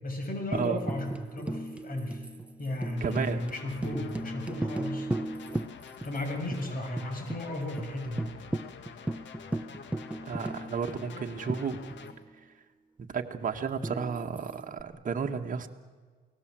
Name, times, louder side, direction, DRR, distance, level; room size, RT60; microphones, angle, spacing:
voice 1, 0.0-2.3 2.6-5.1 6.0-8.2, left 1 dB, 45° left, 5 dB, 6.6 m, -35 dB
Tambourine, 0.5-6.2 6.5-6.6 7.0-7.4 7.8-7.9 8.2-12.3 13.8-14.8, right 1 dB, 5° right, 0.9 m, -36 dB
sound 1, 3.0-12.1, left 6 dB, 65° left, 2.1 m, -47 dB
voice 2, 3.0-3.4 10.2-11.8 13.0-15.7, right 6 dB, 40° right, 3 dB, 1.8 m, -32 dB
29.0 x 19.5 x 7.7 m, 1.5 s
cardioid pair, 90°, 20 cm